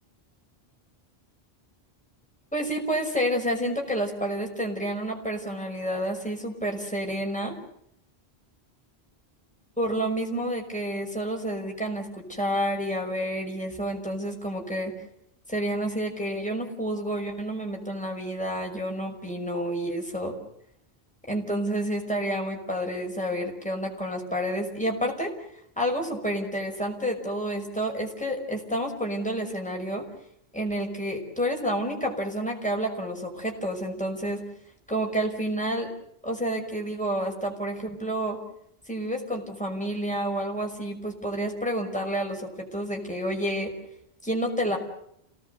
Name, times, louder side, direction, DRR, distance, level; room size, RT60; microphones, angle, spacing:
voice 1, 2.5-7.6 9.8-14.9 15.5-20.3 21.3-25.3 25.8-30.1 30.5-34.4 34.9-35.9 36.2-38.4 38.9-43.7 44.2-44.8, equal, 5° left, 1 dB, 5.6 m, -29 dB
29.0 x 18.5 x 8.1 m, 0.73 s
omnidirectional pair, 1.1 m